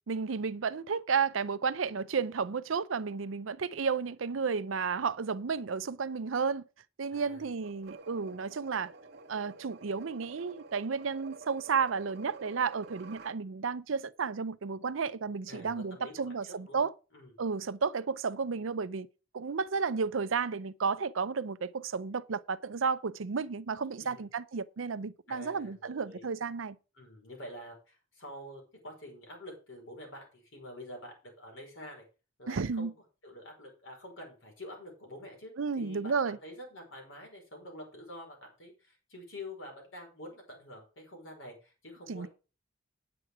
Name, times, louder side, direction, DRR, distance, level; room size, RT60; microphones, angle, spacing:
voice 1, 0.1-6.6 7.0-8.9 9.3-16.9 17.4-19.1 19.3-26.8 32.5-32.9 35.6-36.4 42.1-42.3, right 5 dB, 75° right, 0.6 m, -32 dB
voice 2, 7.1-7.5 15.5-16.8 17.1-17.3 24.0-24.2 25.3-26.2 27.0-32.0 32.4-32.9 33.2-42.3, left 1 dB, 70° left, 5.0 m, -47 dB
sound 1, 7.6-13.4, right 4 dB, 55° right, 1.1 m, -50 dB
9.3 x 7.7 x 4.8 m
head